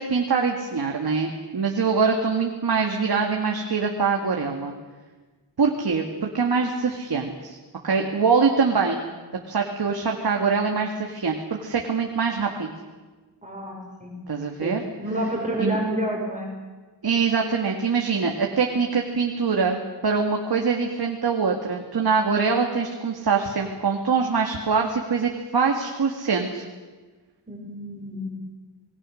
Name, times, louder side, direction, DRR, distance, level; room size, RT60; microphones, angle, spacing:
voice 1, 0.0-4.7 5.6-7.6 7.8-9.0 9.5-12.7 14.3-14.8 15.6-15.8 17.0-26.6, right 5 dB, 60° right, 2 dB, 2.2 m, -24 dB
voice 2, 13.4-14.1 14.6-16.5 27.5-28.3, equal, 15° right, -1 dB, 5.8 m, -29 dB
27.5 x 21.0 x 6.5 m, 1.3 s
wide cardioid pair, 120°, 43 cm